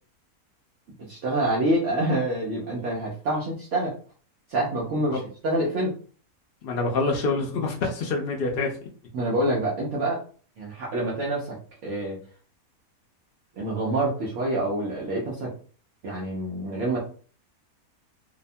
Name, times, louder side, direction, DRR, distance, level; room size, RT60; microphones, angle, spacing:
voice 1, 1.1-3.9 4.5-5.9 9.1-10.2 10.6-11.6 11.8-12.2 13.6-15.5 16.0-17.0, right 1 dB, 60° right, -4 dB, 0.9 m, -26 dB
voice 2, 6.6-8.7, left 3 dB, 85° left, 1 dB, 0.5 m, -26 dB
2.8 x 2.2 x 2.6 m, 0.42 s
omnidirectional pair, 1.5 m